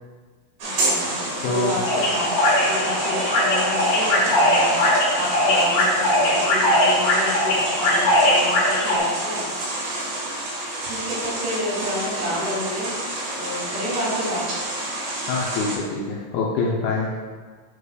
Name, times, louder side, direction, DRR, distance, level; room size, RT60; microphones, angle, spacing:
sound 1, 0.6-15.8, right 1 dB, 60° right, 1.9 m, -29 dB
voice 1, 0.6-2.3 2.6-9.5 9.8-9.9 10.9-13.0 13.4-14.5, equal, 80° right, -6 dB, 4.2 m, -30 dB
voice 2, 1.4-1.8 15.3-17.1, left 3 dB, 80° left, -3 dB, 2.3 m, -25 dB
sound 2, 1.8-9.0, left 1 dB, 60° left, 3.6 m, -20 dB
9.5 x 4.9 x 2.3 m, 1.5 s
omnidirectional pair, 4.9 m